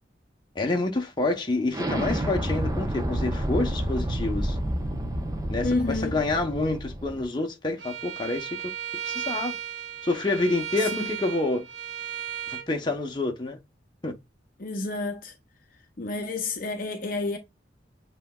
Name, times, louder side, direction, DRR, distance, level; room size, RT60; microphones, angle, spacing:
voice 1, 0.5-4.6 5.5-8.5 9.0-9.5 10.0-11.7 12.5-13.6 14.0-14.1, left 2 dB, 25° left, 0.9 m, -28 dB
Explosion, 1.7-7.2, right 1 dB, 20° right, 0.8 m, -29 dB
voice 2, 5.6-6.2 10.9-11.2 14.6-15.3 16.0-17.4, left 3 dB, 50° left, 0.7 m, -29 dB
Bowed string instrument, 7.8-12.7, right 8 dB, 80° right, 1.0 m, -35 dB
7.5 x 2.9 x 2.3 m
head